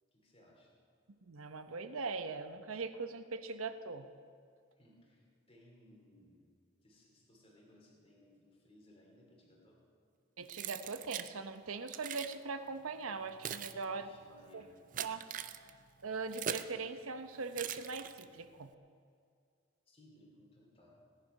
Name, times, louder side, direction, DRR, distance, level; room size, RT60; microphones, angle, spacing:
voice 1, 0.1-0.7 4.7-6.5 6.8-9.9 13.8-14.8 19.9-21.0, left 1 dB, 25° left, -1 dB, 2.7 m, -63 dB
voice 2, 1.2-4.1 10.4-14.1 14.5-14.6 15.0-15.3 15.6-15.8 16.0-18.7, right 4 dB, 90° right, 9 dB, 0.8 m, -41 dB
Keys jangling, 10.5-11.3 11.9-12.4 13.1-16.8 17.5-18.4, right 9 dB, 40° right, 0.4 m, -42 dB
17.5 x 11.0 x 5.4 m, 2.2 s
head